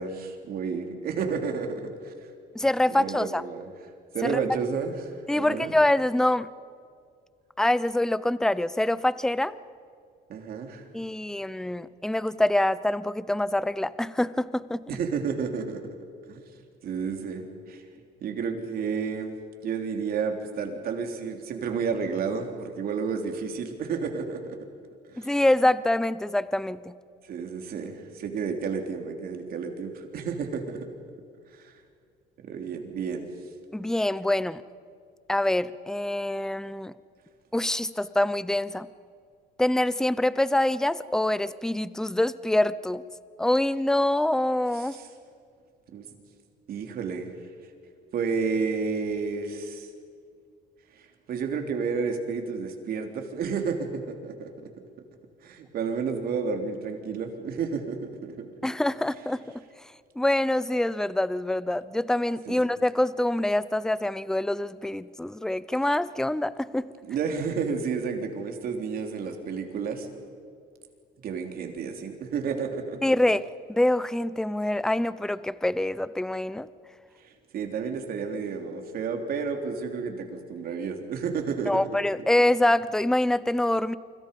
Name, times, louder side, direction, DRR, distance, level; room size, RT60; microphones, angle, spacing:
voice 1, 0.0-2.1 2.9-3.7 4.1-5.7 10.3-10.8 14.9-15.8 16.3-16.4 16.8-17.8 18.2-19.3 19.6-24.6 25.1-25.3 27.2-30.9 31.5-31.7 32.4-33.3 44.7-45.1 45.9-46.1 46.7-47.3 48.1-49.9 51.0-54.5 55.4-58.5 62.5-62.6 67.0-70.1 71.2-73.0 77.2-81.8, right 5 dB, 60° right, 4 dB, 3.4 m, -31 dB
voice 2, 2.5-3.4 4.2-4.4 5.3-6.5 7.6-9.6 10.9-14.8 25.2-26.9 33.7-34.6 35.3-36.9 37.5-38.9 39.6-43.0 43.4-45.0 58.6-59.4 60.2-66.9 73.0-73.4 73.7-76.7 81.7-84.0, left 1 dB, 5° left, 17 dB, 0.6 m, -25 dB
29.0 x 25.0 x 5.4 m, 2.2 s
cardioid pair, 110°, 17 cm